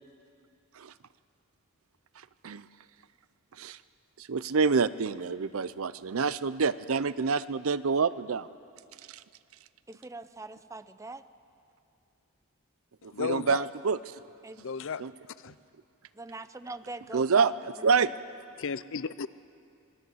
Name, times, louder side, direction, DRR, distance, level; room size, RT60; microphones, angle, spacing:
voice 1, 4.2-8.5 9.1-9.2 13.0-14.0 15.0-15.1 17.1-17.5 17.8-18.1, right 5 dB, 70° right, 16 dB, 0.6 m, -27 dB
voice 2, 9.9-11.2 14.4-14.7 16.1-17.5 17.8-18.1, right 2 dB, 15° right, 12 dB, 0.6 m, -42 dB
voice 3, 13.1-13.6 14.6-15.0 15.4-15.5 18.6-19.3, left 5 dB, 60° left, 16 dB, 0.6 m, -33 dB
26.5 x 20.0 x 7.9 m, 2.5 s
head